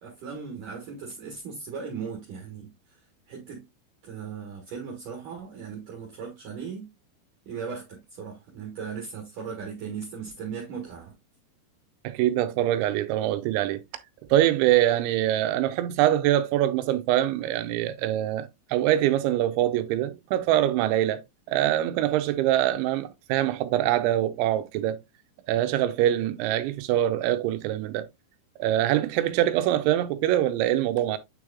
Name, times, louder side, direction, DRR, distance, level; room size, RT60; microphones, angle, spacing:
voice 1, 0.0-3.0 3.3-3.6 4.0-6.9 7.5-11.2, right 6 dB, 60° right, 2.6 m, -37 dB
voice 2, 12.0-13.8 14.3-21.2 21.5-25.0 25.5-28.1 28.6-31.2, right 13 dB, 85° right, 3.1 m, -24 dB
9.4 x 4.8 x 2.3 m
omnidirectional pair, 5.3 m